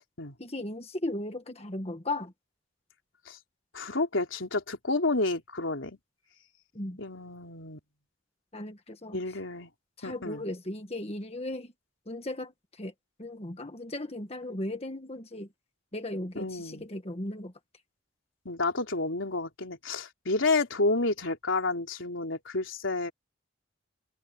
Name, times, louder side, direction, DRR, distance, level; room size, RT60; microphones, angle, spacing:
voice 1, 0.4-2.3 6.7-7.0 8.5-9.2 10.0-11.7 12.1-12.5 12.8-12.9 13.2-15.5 15.9-17.5, left 1 dB, 30° left, 1.6 m, -36 dB
voice 2, 3.7-6.0 7.0-7.8 9.1-9.7 10.0-10.4 16.4-16.9 18.5-23.1, left 2 dB, 85° left, 3.7 m, -30 dB
head